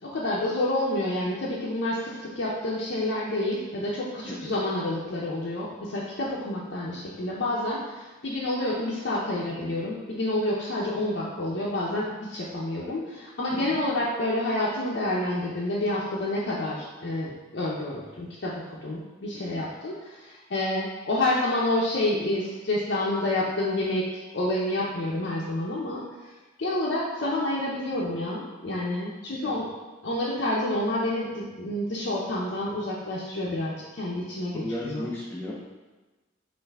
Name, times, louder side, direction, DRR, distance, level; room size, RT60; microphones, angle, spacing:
voice 1, 0.0-18.5 18.8-26.3 26.6-29.7 30.0-35.1, left 1 dB, 60° left, -6 dB, 0.6 m, -29 dB
voice 2, 29.3-29.6 34.5-35.5, left 1 dB, 10° left, -5 dB, 0.4 m, -35 dB
5.4 x 2.6 x 3.4 m, 1.2 s
head